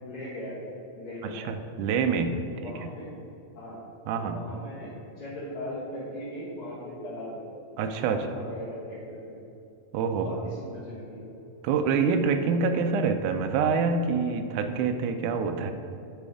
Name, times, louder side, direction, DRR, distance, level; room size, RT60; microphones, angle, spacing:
voice 1, 0.0-1.5 2.5-3.2 3.6-3.9 4.2-7.4 8.0-9.4 10.1-11.4, left 1 dB, 50° left, -9 dB, 1.9 m, -39 dB
voice 2, 1.2-2.9 4.1-4.4 7.8-8.3 9.9-10.3 11.6-15.7, right 5 dB, 80° right, 7 dB, 2.0 m, -26 dB
10.5 x 4.2 x 4.9 m, 2.8 s
omnidirectional pair, 3.7 m